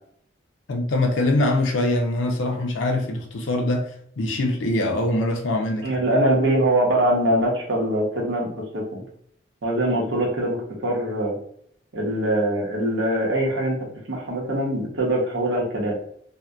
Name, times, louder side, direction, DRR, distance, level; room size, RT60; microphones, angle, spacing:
voice 1, 0.7-3.9 4.2-6.0, left 1 dB, 85° left, 0.5 m, -23 dB
voice 2, 5.8-9.0 9.6-11.4 11.9-16.0, right 1 dB, 80° right, 0.8 m, -23 dB
2.6 x 2.1 x 2.2 m
head